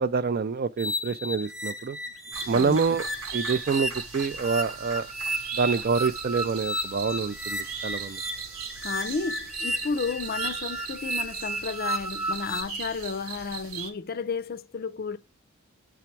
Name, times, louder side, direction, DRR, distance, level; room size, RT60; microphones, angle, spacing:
voice 1, 0.0-2.0 2.5-3.0 3.3-5.1 5.5-8.2, right 5 dB, 45° right, 0.4 m, -26 dB
sound 1, 0.8-12.6, right 1 dB, ahead, 0.8 m, -34 dB
voice 2, 2.3-2.8 8.8-15.2, left 5 dB, 45° left, 0.5 m, -32 dB
sound 2, 2.3-13.9, right 7 dB, 80° right, 1.3 m, -39 dB
7.2 x 3.4 x 4.5 m
head